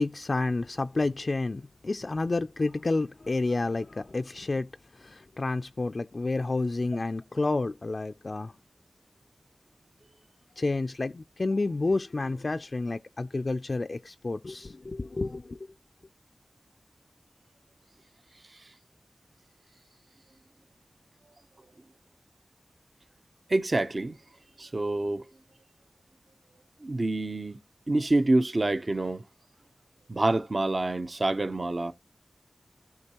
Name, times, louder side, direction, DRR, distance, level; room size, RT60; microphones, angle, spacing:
voice 1, 0.0-4.7 5.0-8.5 10.6-15.6, left 3 dB, 55° left, 0.3 m, -30 dB
voice 2, 23.5-24.2 24.6-25.2 26.8-27.6 27.9-29.2 30.1-31.9, right 2 dB, 50° right, 0.7 m, -27 dB
13.0 x 4.7 x 2.9 m
wide cardioid pair, 50°, 0 cm